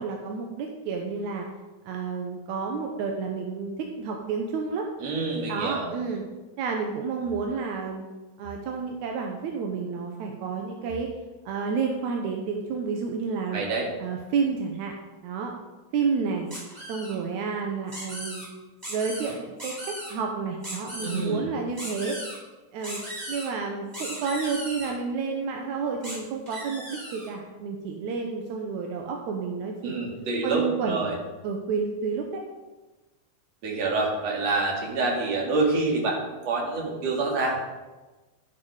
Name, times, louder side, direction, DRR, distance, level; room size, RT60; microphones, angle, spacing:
voice 1, 0.0-1.5 1.9-4.9 5.5-6.2 6.6-8.0 8.4-11.1 11.5-13.6 14.0-14.9 15.2-15.5 15.9-16.5 16.9-18.4 18.9-22.2 22.7-23.0 23.3-30.0 30.4-32.4, right 5 dB, 70° right, 2 dB, 1.9 m, -30 dB
voice 2, 5.0-5.9 13.5-13.9 21.0-21.6 29.8-31.1 33.6-37.7, right 3 dB, 50° right, -1 dB, 3.1 m, -27 dB
sound 1, 16.5-17.1 17.9-18.4 18.8-19.3 19.6-20.1 20.6-21.2 21.8-22.4 22.8-23.5 23.9-24.9 26.0-26.1 26.5-27.3, equal, 10° right, 4.5 m, -37 dB
12.5 x 8.4 x 4.8 m, 1.2 s
omnidirectional pair, 4.2 m